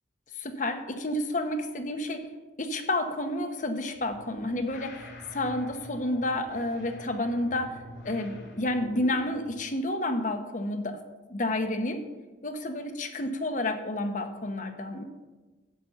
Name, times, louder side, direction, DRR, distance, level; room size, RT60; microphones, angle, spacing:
voice 1, 0.3-2.3 2.6-11.0 11.3-12.0 12.4-15.0, left 1 dB, 45° left, 7 dB, 1.1 m, -30 dB
sound 1, 3.9-9.5, left 1 dB, 75° left, 2.7 m, -46 dB
10.5 x 8.3 x 5.7 m, 1.2 s
head